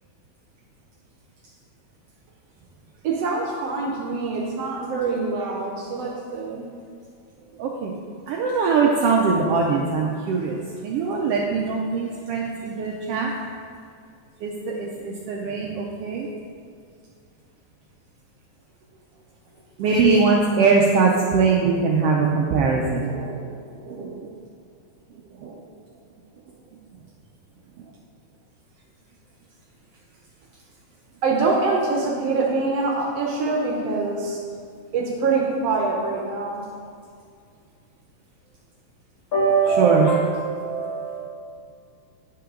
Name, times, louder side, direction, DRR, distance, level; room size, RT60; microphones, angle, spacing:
voice 1, 3.0-6.6 31.2-34.4 34.9-36.6, right 3 dB, 70° right, 1.7 m, -24 dB
voice 2, 7.6-7.9 8.3-13.3 14.4-16.3 19.8-23.5 23.9-24.3 25.4-25.5 39.8-40.1, right 5 dB, 90° right, 1.3 m, -22 dB
voice 3, 19.9-20.2 39.3-41.2, right 4 dB, 50° left, 1.6 m, -22 dB
10.0 x 5.8 x 3.7 m
omnidirectional pair, 3.4 m